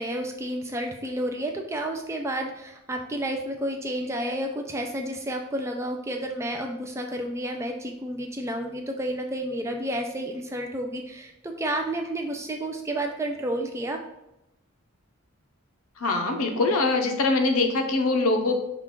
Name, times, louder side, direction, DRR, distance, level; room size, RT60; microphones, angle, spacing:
voice 1, 0.0-14.0, right 1 dB, 15° right, 3 dB, 0.3 m, -31 dB
voice 2, 16.0-18.5, left 3 dB, 80° left, 4 dB, 0.7 m, -23 dB
5.7 x 2.4 x 3.6 m, 0.88 s
head